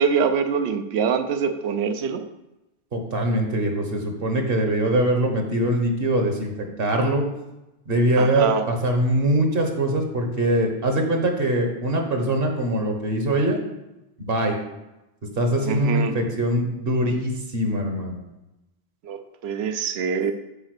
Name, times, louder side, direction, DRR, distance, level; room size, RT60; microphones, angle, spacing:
voice 1, 0.0-2.3 8.2-8.6 15.6-16.2 19.0-20.3, right 6 dB, 80° right, 9 dB, 0.9 m, -24 dB
voice 2, 2.9-7.2 7.9-13.6 14.2-14.6 15.4-18.2, right 1 dB, 65° right, 3 dB, 1.4 m, -22 dB
9.0 x 4.1 x 6.6 m, 0.97 s
omnidirectional pair, 1.1 m